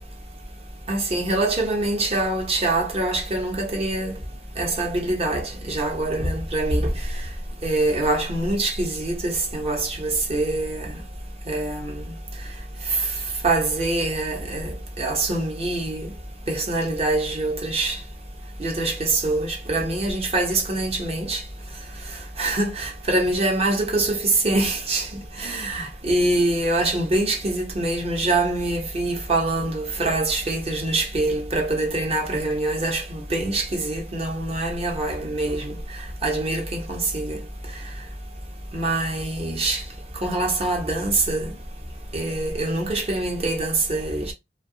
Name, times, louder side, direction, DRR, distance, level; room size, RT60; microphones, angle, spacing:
voice 1, 0.9-4.1 4.6-6.9 7.6-10.8 11.5-11.8 13.4-16.1 16.5-17.9 18.6-21.4 22.4-24.2 24.4-25.0 25.4-35.7 36.2-37.4 38.7-39.8 40.2-41.5 42.1-44.3, right 2 dB, 35° right, 0.8 m, -24 dB
2.7 x 2.2 x 2.6 m
head